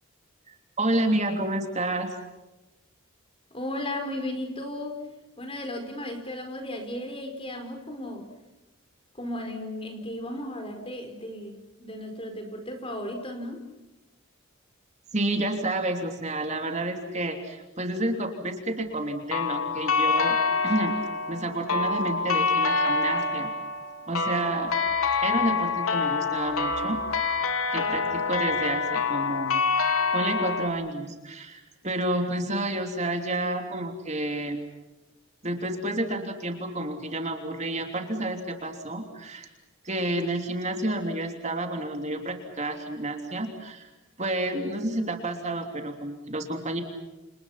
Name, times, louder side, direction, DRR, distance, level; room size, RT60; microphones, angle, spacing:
voice 1, 0.5-2.1 15.1-20.4 20.6-20.9 21.3-23.5 24.1-24.7 25.2-27.0 27.7-34.6 35.4-39.5 39.8-43.9 44.2-46.8, right 1 dB, 35° right, 5 dB, 3.2 m, -30 dB
voice 2, 3.5-5.0 5.4-8.3 9.1-13.7, left 1 dB, 25° left, 6 dB, 4.8 m, -35 dB
sound 1, 19.3-30.7, left 4 dB, 85° left, 3.4 m, -26 dB
30.0 x 28.5 x 5.9 m, 1.1 s
head